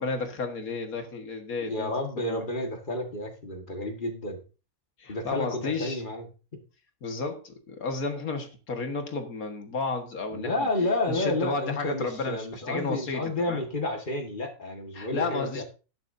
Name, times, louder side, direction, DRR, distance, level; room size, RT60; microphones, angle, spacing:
voice 1, 0.0-1.9 2.3-2.5 5.0-6.0 7.0-10.7 11.1-13.6 14.9-15.6, left 3 dB, 75° left, 5 dB, 2.1 m, -32 dB
voice 2, 1.6-4.4 5.1-6.2 10.3-15.6, left 2 dB, 35° left, 3 dB, 1.9 m, -30 dB
14.0 x 10.5 x 2.7 m, 0.34 s
omnidirectional pair, 1.5 m